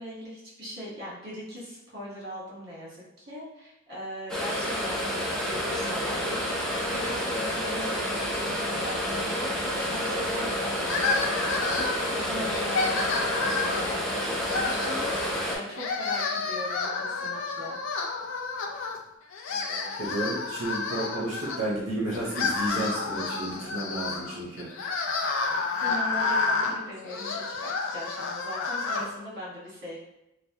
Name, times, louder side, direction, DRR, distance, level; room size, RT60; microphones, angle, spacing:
voice 1, 0.0-5.2 5.5-6.5 6.9-17.8 25.8-30.0, equal, 55° right, -7 dB, 1.3 m, -40 dB
sound 1, 4.3-15.6, equal, 5° left, 0.5 m, -29 dB
sound 2, 10.8-12.1 12.5-14.0 14.4-15.4 15.7-19.0 19.3-21.6 22.1-29.1, left 4 dB, 70° left, 0.4 m, -30 dB
voice 2, 19.5-24.7, right 1 dB, 70° right, -5 dB, 0.7 m, -32 dB
3.2 x 2.0 x 2.7 m, 0.90 s
head